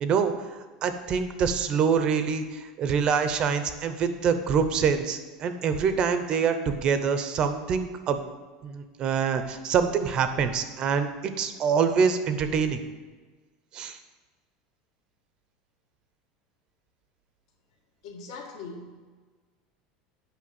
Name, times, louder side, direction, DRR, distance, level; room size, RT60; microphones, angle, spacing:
voice 1, 0.0-8.2 8.6-12.8 13.7-14.0, right 6 dB, 30° right, 9 dB, 0.6 m, -25 dB
voice 2, 18.0-19.0, left 4 dB, 65° left, 3 dB, 1.7 m, -41 dB
8.6 x 5.6 x 7.5 m, 1.4 s
cardioid pair, 175°, 3 cm